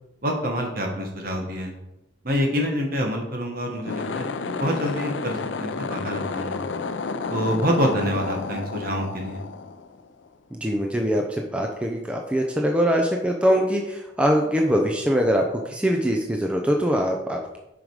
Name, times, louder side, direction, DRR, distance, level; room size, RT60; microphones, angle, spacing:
voice 1, 0.2-1.7 2.2-6.6 7.3-9.4, equal, 50° right, 2 dB, 1.5 m, -26 dB
sound 1, 3.7-10.3, left 4 dB, 85° left, 0.5 m, -31 dB
voice 2, 10.5-17.6, equal, 5° right, 1 dB, 0.6 m, -23 dB
7.5 x 5.1 x 4.9 m, 0.90 s
head